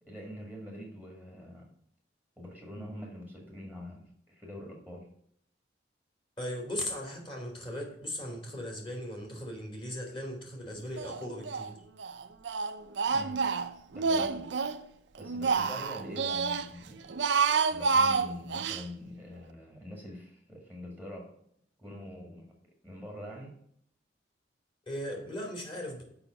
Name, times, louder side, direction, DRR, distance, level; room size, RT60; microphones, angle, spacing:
voice 1, 0.0-1.8 2.4-5.1 13.1-13.4 13.9-14.4 15.2-17.1 17.7-21.4 21.8-22.5 22.8-23.5, left 1 dB, 10° left, -1 dB, 1.7 m, -44 dB
voice 2, 6.4-11.7 24.9-26.0, left 1 dB, 30° left, 1 dB, 2.9 m, -38 dB
Speech, 11.0-11.7 12.0-14.8 15.2-16.7 17.0-18.8, right 5 dB, 70° right, 0.6 m, -29 dB
7.0 x 5.6 x 7.0 m, 0.68 s
head